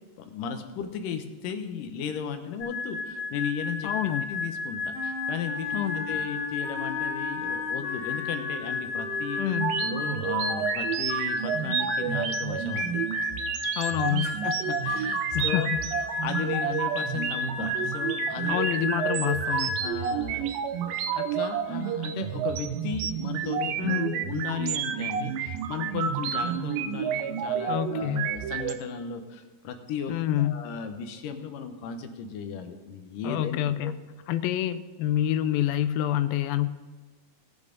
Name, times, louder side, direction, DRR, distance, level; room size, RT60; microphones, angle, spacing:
voice 1, 0.2-3.9 4.3-5.8 6.1-9.4 9.8-13.1 14.2-15.7 16.2-18.6 19.8-33.9, left 7 dB, 75° left, 6 dB, 2.5 m, -35 dB
sound 1, 2.6-19.9, left 4 dB, 40° left, 4.4 m, -33 dB
voice 2, 3.8-4.3 5.7-6.0 9.4-9.8 13.8-14.5 15.3-15.8 18.5-19.8 23.8-24.3 27.7-28.4 30.1-30.7 33.2-34.0 34.3-36.7, left 12 dB, 90° left, 12 dB, 2.4 m, -27 dB
Wind instrument woodwind instrument, 4.9-9.8, left 4 dB, 55° left, 1.9 m, -38 dB
sound 2, 9.5-28.7, right 9 dB, 85° right, 2.5 m, -30 dB
19.5 x 7.1 x 3.8 m, 1.4 s
omnidirectional pair, 4.0 m